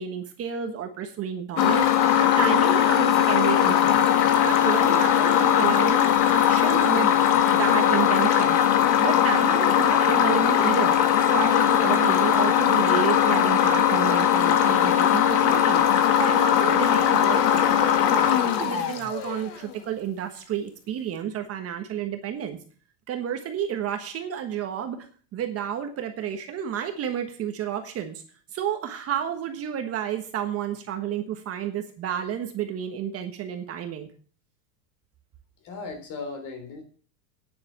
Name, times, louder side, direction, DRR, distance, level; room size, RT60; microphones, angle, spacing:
voice 1, 0.0-4.1 4.4-7.2 7.5-8.6 9.0-11.0 11.3-22.6 23.1-28.2 28.5-34.1, right 9 dB, 30° right, 6 dB, 1.3 m, -31 dB
sound 1, 1.6-19.5, left 10 dB, 75° left, 1.9 m, -20 dB
voice 2, 35.6-36.8, left 3 dB, 40° left, 7 dB, 3.5 m, -36 dB
9.7 x 7.7 x 7.4 m, 0.41 s
supercardioid pair, 150°, 48 cm